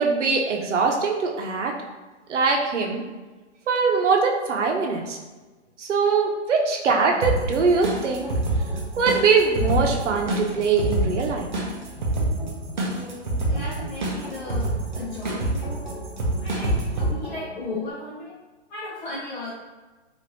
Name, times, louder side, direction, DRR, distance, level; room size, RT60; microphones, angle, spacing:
voice 1, 0.0-1.7 2.3-3.0 3.7-5.2 5.8-8.3 9.0-11.5, right 4 dB, 75° right, 1 dB, 0.8 m, -22 dB
sound 1, 6.8-17.9, equal, 20° left, 1.1 m, -41 dB
sound 2, 7.2-17.1, right 2 dB, 40° right, 0.6 m, -27 dB
voice 2, 12.8-15.9 16.4-18.4 18.7-19.5, left 2 dB, 40° left, -9 dB, 0.7 m, -36 dB
3.1 x 2.5 x 2.9 m, 1.2 s
hypercardioid pair, 170°, 36 cm